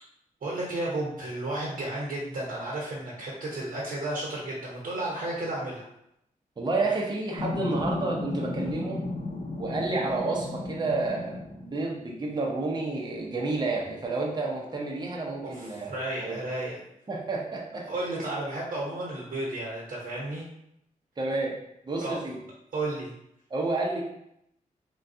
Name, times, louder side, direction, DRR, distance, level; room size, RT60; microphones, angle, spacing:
voice 1, 0.4-5.9 15.4-16.8 17.9-20.4 22.0-22.2 22.7-23.1, right 2 dB, 80° right, -5 dB, 0.9 m, -33 dB
voice 2, 6.6-9.0 9.6-15.9 16.2-16.4 17.1-17.9 21.2-21.6 21.8-22.4 23.5-24.0, right 3 dB, 30° right, -1 dB, 0.6 m, -30 dB
sound 1, 7.3-11.8 13.1-13.3 13.6-15.7, left 2 dB, 85° left, 0.7 m, -35 dB
3.4 x 2.2 x 2.6 m, 0.79 s
wide cardioid pair, 90°, 15 cm